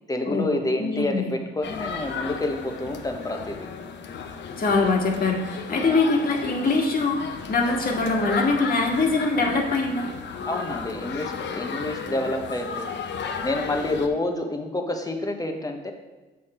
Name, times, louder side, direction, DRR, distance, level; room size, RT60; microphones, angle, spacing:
voice 1, 0.1-3.7 10.4-12.9 13.4-15.9, left 2 dB, 20° left, 4 dB, 1.2 m, -28 dB
voice 2, 0.8-1.3 4.6-10.1, left 3 dB, 45° left, 0 dB, 1.8 m, -23 dB
sound 1, 1.6-14.1, left 6 dB, 65° left, 0.9 m, -34 dB
7.3 x 6.4 x 4.4 m, 1.2 s
cardioid pair, 90°, 20 cm